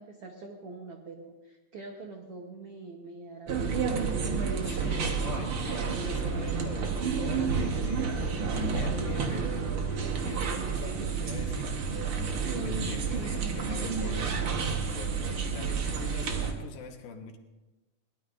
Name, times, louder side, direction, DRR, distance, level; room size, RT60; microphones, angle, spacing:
voice 1, 0.0-3.8, right 3 dB, 85° right, 2 dB, 1.2 m, -45 dB
sound 1, 3.5-16.5, right 5 dB, 60° right, 1.4 m, -30 dB
voice 2, 4.6-17.4, left 5 dB, 80° left, 4 dB, 3.0 m, -44 dB
22.0 x 18.5 x 2.6 m, 1.1 s
omnidirectional pair, 4.3 m